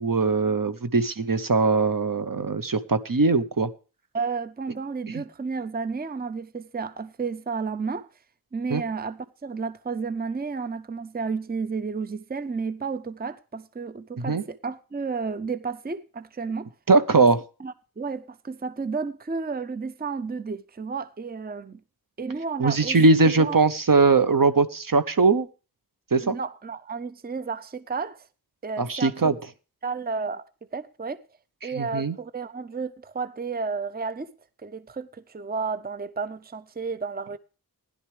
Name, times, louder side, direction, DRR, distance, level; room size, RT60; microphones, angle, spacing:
voice 1, 0.0-3.7 8.7-8.8 14.2-14.4 16.9-17.4 22.6-25.5 26.1-26.3 28.8-29.3 31.6-32.2, right 3 dB, 60° right, 0.9 m, -21 dB
voice 2, 4.1-8.1 8.5-16.7 17.2-17.3 17.6-21.8 22.2-23.6 26.2-28.3 28.6-29.1 29.8-30.4 30.7-31.2 31.6-34.3 34.6-37.4, right 4 dB, 25° right, 0.5 m, -32 dB
16.0 x 11.0 x 3.2 m
wide cardioid pair, 40°, 37 cm